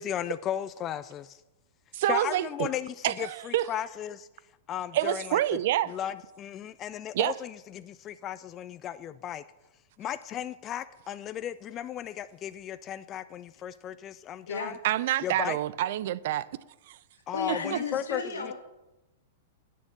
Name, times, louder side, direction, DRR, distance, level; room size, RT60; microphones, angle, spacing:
voice 1, 0.0-1.4 2.1-4.3 4.7-5.4 5.9-9.4 10.0-14.7 15.2-15.6 17.3-18.5, left 10 dB, 30° left, 0.3 m, -35 dB
voice 2, 1.9-2.7 3.0-3.7 4.9-5.9 7.1-7.3 14.8-16.5 16.9-17.0 17.5-17.8, right 13 dB, 60° right, 0.4 m, -27 dB
voice 3, 17.3-18.5, left 4 dB, 85° left, 1.7 m, -34 dB
8.5 x 7.0 x 6.6 m
hypercardioid pair, 110°, 0 cm